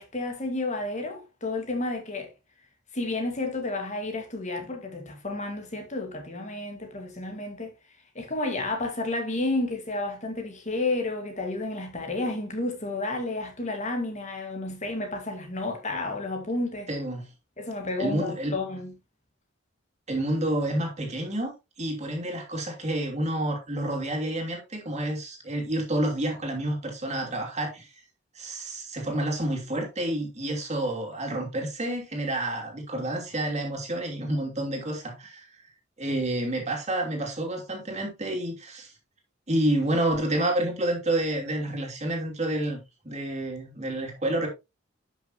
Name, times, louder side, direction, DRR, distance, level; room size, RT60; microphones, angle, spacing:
voice 1, 0.0-2.3 2.9-7.7 8.2-16.9 17.6-18.9, left 2 dB, 35° left, 2.0 m, -31 dB
voice 2, 16.9-17.3 18.0-18.5 20.1-27.9 28.3-35.5 36.0-38.9 39.5-42.8 43.0-44.5, right 1 dB, 35° right, 2.9 m, -29 dB
11.5 x 6.3 x 3.0 m
head